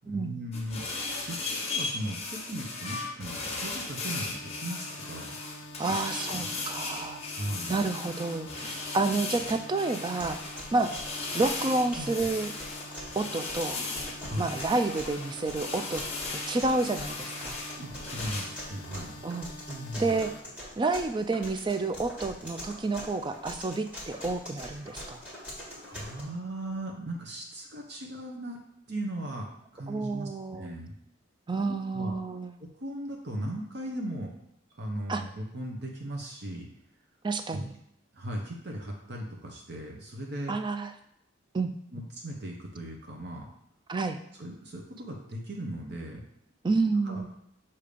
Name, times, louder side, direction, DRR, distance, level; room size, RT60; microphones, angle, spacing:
voice 1, 0.1-0.9 1.3-6.4 7.3-7.8 12.0-12.1 14.2-14.5 17.8-19.1 19.7-20.2 25.8-28.6 28.9-29.5 29.7-30.9 31.7-32.2 32.6-34.3 34.8-36.7 37.5-37.6 38.1-40.5 41.9-43.5 44.4-46.2 47.0-47.2, right 1 dB, 50° right, 0 dB, 0.8 m, -38 dB
sound 1, 0.5-18.5, left 3 dB, 30° left, 1.0 m, -37 dB
sound 2, 4.3-20.4, left 1 dB, 60° left, 0.7 m, -46 dB
voice 2, 5.8-7.2 7.7-10.4 10.7-10.9 11.3-12.5 13.2-13.8 14.4-16.0 16.3-17.6 19.2-19.5 20.0-20.3 20.8-25.2 29.9-30.7 31.5-32.5 35.1-35.2 37.2-37.7 40.5-40.9 41.5-41.7 43.9-44.2 46.6-47.3, right 3 dB, 20° right, 8 dB, 0.3 m, -29 dB
sound 3, 10.2-26.2, left 1 dB, 5° right, 1.6 m, -43 dB
6.7 x 2.8 x 5.0 m, 0.76 s
head